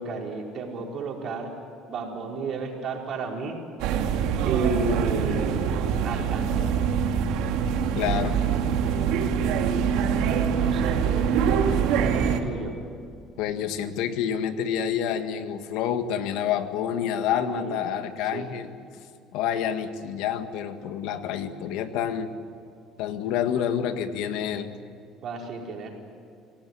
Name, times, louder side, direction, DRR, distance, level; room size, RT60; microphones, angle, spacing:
voice 1, 0.0-1.5 1.8-3.6 4.4-5.6 6.0-6.7 10.5-12.7 17.4-17.8 18.2-18.6 25.2-25.9, right 3 dB, 45° right, 0 dB, 4.7 m, -32 dB
sound 1, 3.8-12.4, right 7 dB, 80° right, 2.3 m, -24 dB
voice 2, 8.0-8.4 13.4-18.7 19.3-22.3 23.0-24.7, left 9 dB, 80° left, 8 dB, 1.8 m, -28 dB
25.5 x 17.5 x 9.8 m, 2.4 s
cardioid pair, 130°, 0 cm